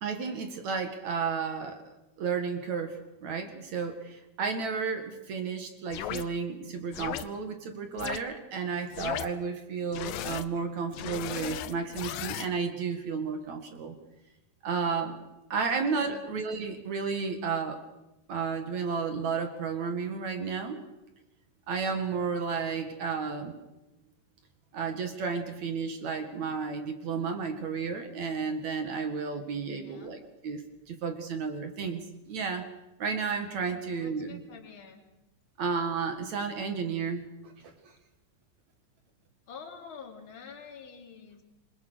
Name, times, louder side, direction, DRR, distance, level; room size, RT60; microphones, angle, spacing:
voice 1, 0.0-1.8 2.2-13.9 14.6-15.2 15.5-17.8 18.3-20.8 21.7-23.5 24.7-30.2 30.4-30.6 30.9-32.7 33.0-34.4 35.6-37.9, right 5 dB, 50° right, 6 dB, 2.6 m, -32 dB
sound 1, 5.9-6.2 6.9-7.2 8.0-8.2 8.9-9.3 9.9-10.5 10.9-12.5, left 12 dB, 75° left, 2.3 m, -36 dB
voice 2, 15.6-16.2 29.7-30.2 33.6-35.0 39.5-41.4, left 6 dB, 30° left, 2 dB, 3.3 m, -48 dB
26.5 x 22.5 x 6.4 m, 0.96 s
omnidirectional pair, 4.9 m